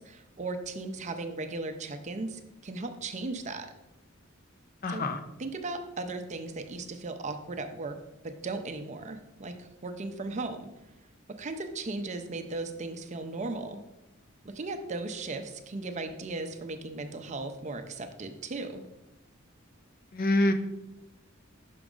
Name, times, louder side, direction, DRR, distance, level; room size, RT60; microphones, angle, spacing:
voice 1, 0.0-3.7 4.9-5.1 5.4-8.0 8.2-10.7 11.4-13.8 14.4-18.8, right 3 dB, 35° right, 7 dB, 0.5 m, -37 dB
voice 2, 4.8-5.2 20.1-20.5, left 1 dB, 45° left, 8 dB, 0.5 m, -25 dB
5.9 x 5.0 x 3.7 m, 0.92 s
head